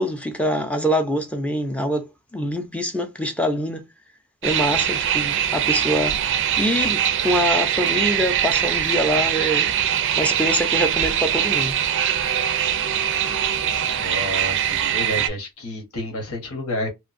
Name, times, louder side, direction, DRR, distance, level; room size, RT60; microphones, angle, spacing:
voice 1, 0.0-3.8 4.4-6.2 6.6-9.7 10.2-11.8, equal, 5° left, 0.5 m, -24 dB
sound 1, 4.4-15.3, right 9 dB, 55° right, 0.4 m, -22 dB
voice 2, 14.0-16.9, left 1 dB, 70° left, 1.1 m, -30 dB
2.9 x 2.3 x 2.5 m
head